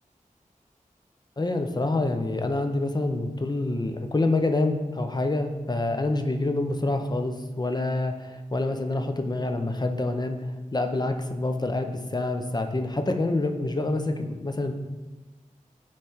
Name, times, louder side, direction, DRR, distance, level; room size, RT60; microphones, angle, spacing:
voice 1, 1.4-10.4 10.7-14.7, left 2 dB, 30° left, 6 dB, 0.6 m, -27 dB
9.0 x 3.3 x 4.3 m, 1.2 s
wide cardioid pair, 60°, 14 cm